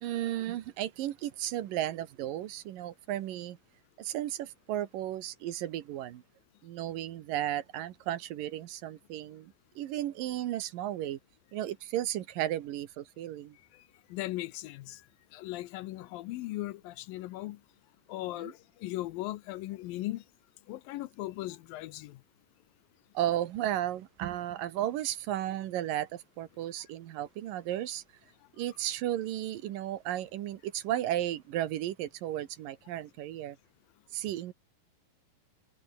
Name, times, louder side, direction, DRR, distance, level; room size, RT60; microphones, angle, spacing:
voice 1, 0.0-3.6 4.0-6.2 6.6-11.2 11.5-13.6 18.4-18.5 23.1-28.0 28.6-33.6 34.1-34.5, right 12 dB, 70° right, 2.7 m, -34 dB
voice 2, 14.1-15.0 15.3-17.6 18.1-20.2 20.7-22.2, left 16 dB, 75° left, 2.4 m, -38 dB
omnidirectional pair, 4.3 m